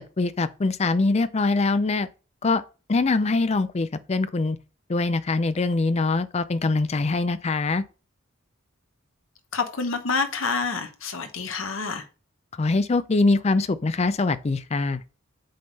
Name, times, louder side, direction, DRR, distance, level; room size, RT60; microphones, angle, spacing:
voice 1, 0.0-2.1 2.4-2.6 2.9-4.6 4.9-7.8 12.6-15.0, left 3 dB, 30° left, 0.4 m, -23 dB
voice 2, 9.5-12.1, left 4 dB, 75° left, 1.1 m, -28 dB
7.6 x 3.6 x 4.0 m
head